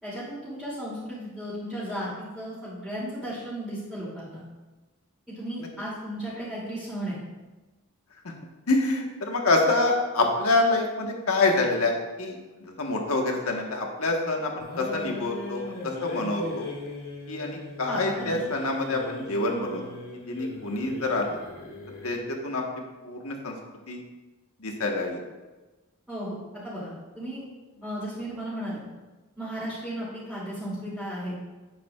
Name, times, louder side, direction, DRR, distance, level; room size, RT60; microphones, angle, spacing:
voice 1, 0.0-4.4 5.3-7.2 17.8-18.4 26.1-26.4 26.6-27.4 27.8-28.8 29.4-31.4, equal, 5° right, -12 dB, 2.9 m, -35 dB
voice 2, 8.7-16.7 17.3-19.8 20.3-21.4 22.0-22.6 23.0-24.0 24.6-25.2, left 2 dB, 75° left, 1 dB, 1.4 m, -26 dB
sound 1, 14.6-22.3, left 1 dB, 90° left, 2.8 m, -39 dB
9.9 x 9.4 x 2.5 m, 1.2 s
head